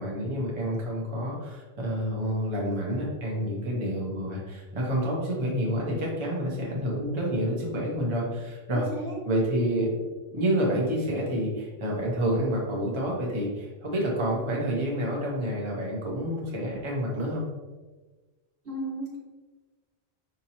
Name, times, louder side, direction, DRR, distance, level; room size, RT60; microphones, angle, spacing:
voice 1, 0.0-8.9 9.2-9.9 10.3-17.5, equal, 30° right, -3 dB, 0.7 m, -28 dB
voice 2, 8.7-9.2 18.6-19.2, right 1 dB, 60° right, -4 dB, 1.3 m, -34 dB
5.1 x 2.8 x 2.8 m, 1.2 s
omnidirectional pair, 1.1 m